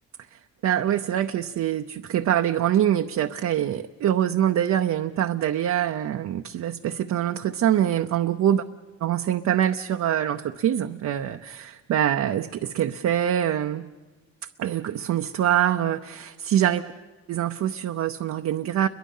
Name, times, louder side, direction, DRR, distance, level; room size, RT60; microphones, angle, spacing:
voice 1, 0.6-8.6 9.0-13.9 14.6-16.9 17.3-18.9, right 10 dB, 65° right, 5 dB, 0.8 m, -24 dB
29.5 x 23.0 x 5.6 m, 1.2 s
cardioid pair, 90°, 30 cm